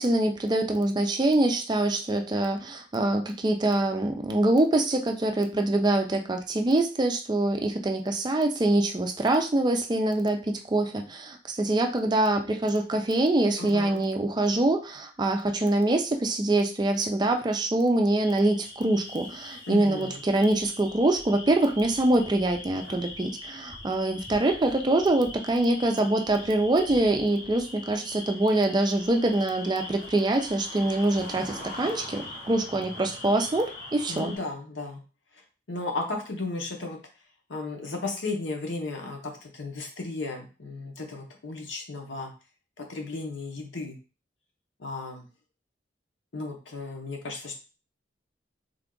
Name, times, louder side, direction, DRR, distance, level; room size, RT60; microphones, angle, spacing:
voice 1, 0.0-34.3, right 2 dB, 25° right, 5 dB, 0.4 m, -24 dB
voice 2, 13.6-14.0 19.7-20.2 34.1-35.0 35.3-35.4 35.7-37.0 37.5-42.3 42.8-44.0 44.8-45.2 46.3-47.6, left 3 dB, 90° left, 2 dB, 0.9 m, -34 dB
sound 1, 18.2-34.4, left 2 dB, 65° left, 2.1 m, -42 dB
3.4 x 2.4 x 3.7 m, 0.34 s
head